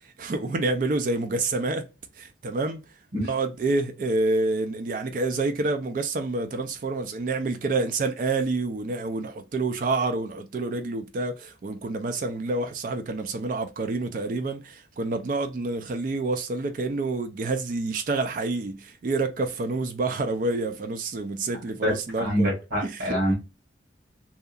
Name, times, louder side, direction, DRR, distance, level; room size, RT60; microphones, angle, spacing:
voice 1, 0.2-1.8 2.2-2.8 3.2-22.5 22.8-23.2, right 3 dB, 45° right, 0.3 m, -28 dB
voice 2, 21.8-23.3, equal, 75° right, 1.2 m, -25 dB
2.7 x 2.3 x 2.3 m
head